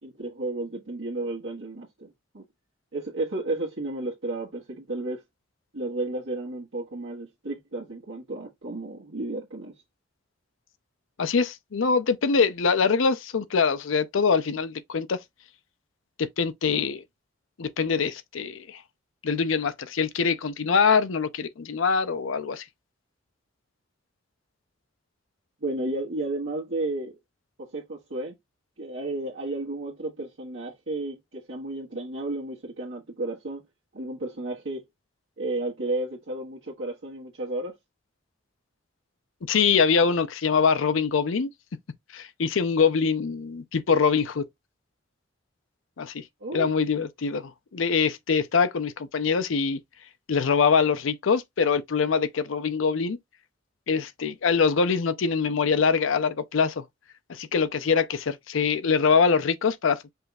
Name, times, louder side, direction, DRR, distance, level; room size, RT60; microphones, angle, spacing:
voice 1, 0.0-2.4 2.9-5.2 5.7-9.7 25.6-27.2 27.6-28.3 28.8-33.6 33.9-34.8 35.4-37.7 46.4-46.7, right 2 dB, 80° right, 1.5 m, -32 dB
voice 2, 11.2-15.2 16.2-17.0 17.6-18.8 19.2-22.6 39.5-41.5 42.1-44.5 46.0-46.2 46.5-49.8 50.3-53.2 53.9-56.8 57.3-60.1, left 5 dB, 85° left, 0.6 m, -24 dB
5.4 x 2.3 x 4.1 m
head